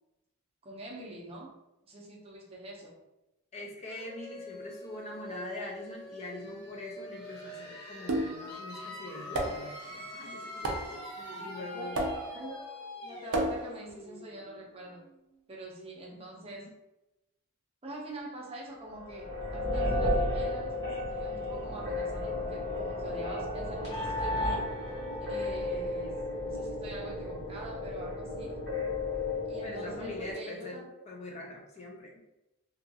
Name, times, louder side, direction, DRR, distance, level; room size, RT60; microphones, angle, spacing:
voice 1, 0.6-1.5 1.8-3.0 11.2-12.6 13.0-15.0 15.5-16.7 17.8-24.7 25.3-28.6 29.5-30.8, right 1 dB, 25° right, -3 dB, 0.6 m, -44 dB
voice 2, 3.5-12.0 16.1-16.7 29.6-32.1, left 1 dB, 30° left, -1 dB, 0.4 m, -43 dB
sound 1, 3.9-15.4, left 1 dB, 85° left, 0.9 m, -45 dB
sound 2, 8.1-8.6 9.4-9.8 10.6-11.0 12.0-12.5 13.3-13.9, right 1 dB, 70° right, 0.5 m, -32 dB
sound 3, 19.0-30.3, left 1 dB, 50° left, 1.4 m, -33 dB
2.6 x 2.4 x 2.7 m, 0.93 s
head